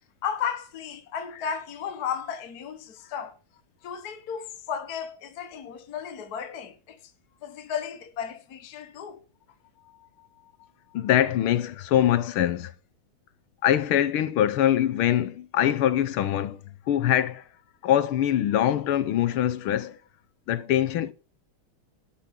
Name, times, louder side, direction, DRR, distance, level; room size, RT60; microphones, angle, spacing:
voice 1, 0.2-3.3 3.8-7.0 7.4-9.2, left 7 dB, 50° left, 1.6 m, -34 dB
voice 2, 10.9-12.7 13.6-16.6 16.9-17.4 17.8-20.0 20.5-21.1, left 11 dB, 85° left, 1.8 m, -23 dB
12.5 x 6.0 x 6.0 m
omnidirectional pair, 2.3 m